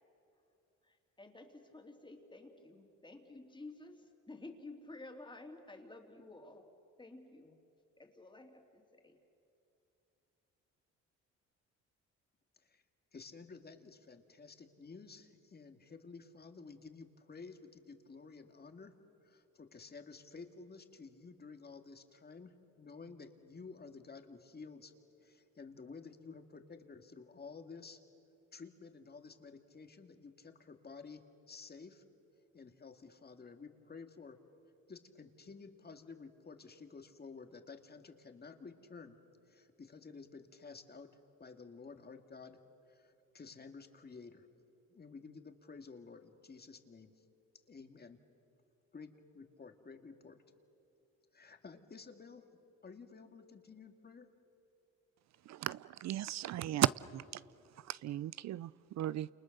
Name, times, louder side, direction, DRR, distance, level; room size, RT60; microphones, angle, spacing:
voice 1, 0.8-6.7 7.0-7.6 8.0-9.2, left 2 dB, 15° left, 3.1 m, -52 dB
voice 2, 13.1-19.0 19.2-24.9 25.2-28.0 28.5-32.0 32.5-34.4 34.9-39.2 39.5-41.1 41.4-42.6 42.9-44.5 44.9-47.2 47.7-48.2 48.9-50.4 51.3-52.5 52.8-54.3, left 4 dB, 30° left, 2.1 m, -52 dB
voice 3, 55.5-57.4 57.8-59.3, right 13 dB, 65° right, 0.5 m, -36 dB
29.5 x 28.5 x 6.7 m
cardioid pair, 90°, 30 cm